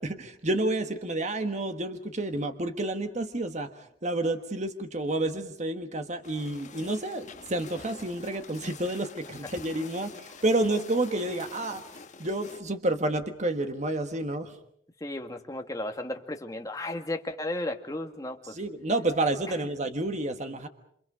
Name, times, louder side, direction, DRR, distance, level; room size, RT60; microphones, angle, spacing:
voice 1, 0.0-14.6 18.5-20.7, right 2 dB, 40° right, 7 dB, 1.4 m, -30 dB
sound 1, 6.2-12.6, left 5 dB, 40° left, 1.7 m, -46 dB
voice 2, 15.0-18.6, left 1 dB, 20° left, 4 dB, 1.8 m, -34 dB
28.0 x 26.5 x 5.0 m, 0.68 s
head